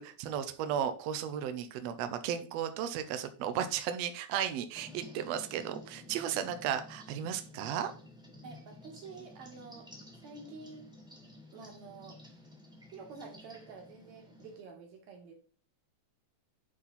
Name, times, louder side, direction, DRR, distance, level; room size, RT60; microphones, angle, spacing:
voice 1, 0.0-7.9, right 9 dB, 80° right, 9 dB, 1.5 m, -35 dB
sound 1, 4.7-14.6, left 1 dB, ahead, 1.3 m, -52 dB
voice 2, 8.4-9.9 10.2-10.9 11.5-12.2 12.9-15.4, right 4 dB, 65° right, 2 dB, 2.9 m, -49 dB
9.9 x 4.2 x 4.1 m, 0.40 s
omnidirectional pair, 3.6 m